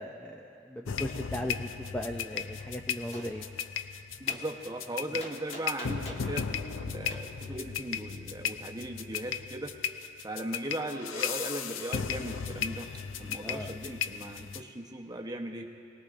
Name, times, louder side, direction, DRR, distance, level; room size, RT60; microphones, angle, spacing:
voice 1, 0.0-3.4 13.4-13.7, left 1 dB, 5° left, 2 dB, 0.4 m, -37 dB
sound 1, 0.8-14.6, left 7 dB, 70° left, 0.5 m, -36 dB
Gunshot gunfire, 3.1-3.3 4.3-4.4 5.2-6.3 7.1-7.2, left 1 dB, 30° left, 1.5 m, -43 dB
voice 2, 4.2-9.8 10.2-12.9 13.2-15.7, right 1 dB, 20° right, 1 dB, 0.9 m, -38 dB
26.0 x 19.0 x 2.5 m, 2.7 s
head